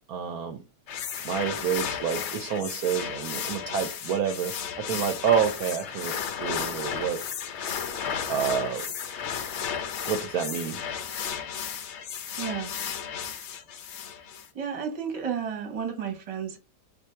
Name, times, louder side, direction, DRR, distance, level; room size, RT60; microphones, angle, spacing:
voice 1, 0.1-0.6 1.2-7.2 8.3-8.9 10.0-10.8, right 8 dB, 70° right, 0.9 m, -28 dB
sound 1, 0.9-14.5, left 7 dB, 70° left, 0.6 m, -34 dB
voice 2, 12.4-12.7 14.5-16.6, right 7 dB, 25° right, 0.8 m, -32 dB
3.8 x 2.6 x 4.3 m
omnidirectional pair, 1.9 m